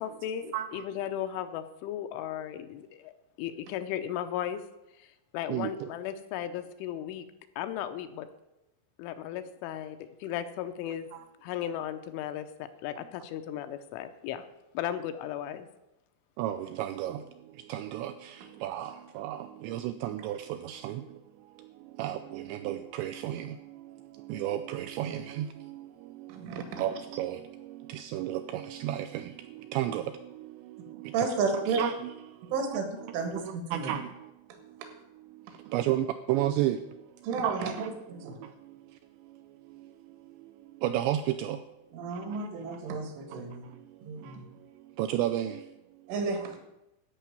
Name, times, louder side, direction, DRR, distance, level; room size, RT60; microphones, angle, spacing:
voice 1, 0.0-3.1 3.4-4.6 5.0-5.1 5.3-7.3 7.6-8.3 9.0-11.1 11.4-14.4 14.7-15.7, left 10 dB, 80° left, 3.0 m, -36 dB
voice 2, 0.5-0.8 5.5-5.9 11.1-11.3 16.4-32.8 33.1-34.3 34.6-37.9 38.2-41.6 42.1-42.9 43.5-46.5, right 12 dB, 90° right, 2.6 m, -35 dB
voice 3, 26.3-26.8 31.1-31.8 32.5-32.9 33.1-33.9 37.2-38.4 41.9-43.6 44.0-44.4 46.1-46.6, right 4 dB, 75° right, 4.2 m, -32 dB
13.5 x 5.6 x 9.3 m
omnidirectional pair, 5.8 m